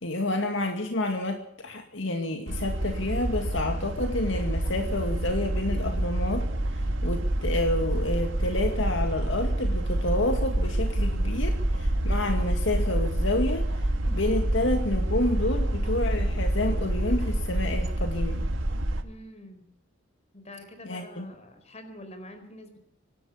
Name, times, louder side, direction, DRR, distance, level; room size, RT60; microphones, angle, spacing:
voice 1, 0.0-6.5 7.0-13.7 14.1-18.4 20.8-21.3, left 1 dB, 70° left, 4 dB, 2.3 m, -29 dB
sound 1, 2.5-19.0, right 1 dB, 80° right, 1.8 m, -27 dB
voice 2, 19.0-19.7 20.3-22.9, left 1 dB, 35° left, 8 dB, 4.5 m, -46 dB
24.5 x 12.0 x 8.6 m, 0.65 s
head